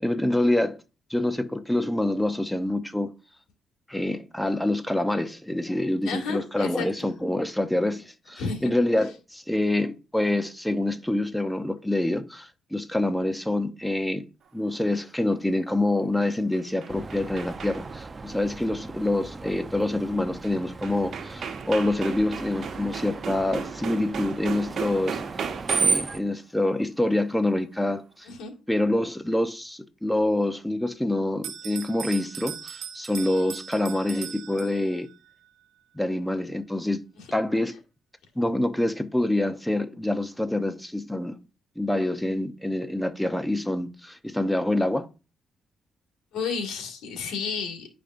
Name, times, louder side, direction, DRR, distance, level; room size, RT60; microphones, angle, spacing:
voice 1, 0.0-0.8 1.1-3.1 3.9-14.2 14.5-25.2 25.8-28.3 28.7-35.1 35.9-37.0 37.3-37.8 38.4-41.4 41.8-45.1, left 1 dB, 5° left, 0.8 m, -26 dB
voice 2, 6.0-6.9 8.4-8.7 28.3-28.5 37.2-37.3 46.3-47.9, left 5 dB, 85° left, 2.0 m, -31 dB
sound 1, 16.3-18.1 20.4-20.5 20.8-26.2, right 6 dB, 60° right, 1.2 m, -36 dB
Screech, 16.9-26.2, right 4 dB, 30° right, 0.6 m, -34 dB
Bell, 31.4-35.2, right 9 dB, 80° right, 0.8 m, -39 dB
10.5 x 5.1 x 2.6 m
cardioid pair, 90°, 0 cm